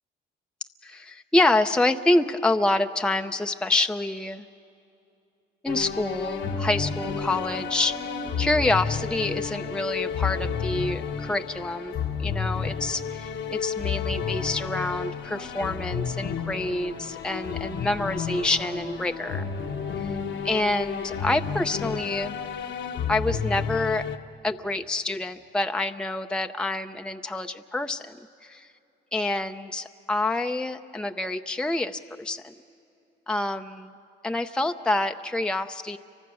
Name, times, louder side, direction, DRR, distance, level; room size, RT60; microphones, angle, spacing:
voice 1, 0.8-4.4 5.6-7.9 8.4-19.4 20.0-20.1 20.4-22.4 23.1-24.0 24.4-28.7 29.1-32.5 33.3-33.9 34.2-36.0, left 2 dB, 5° left, 6 dB, 0.6 m, -27 dB
sound 1, 5.7-24.2, left 6 dB, 70° left, 1.2 m, -31 dB
sound 2, 5.8-21.8, right 2 dB, 30° right, 1.9 m, -44 dB
30.0 x 24.5 x 6.3 m, 2.7 s
cardioid pair, 90°, 20 cm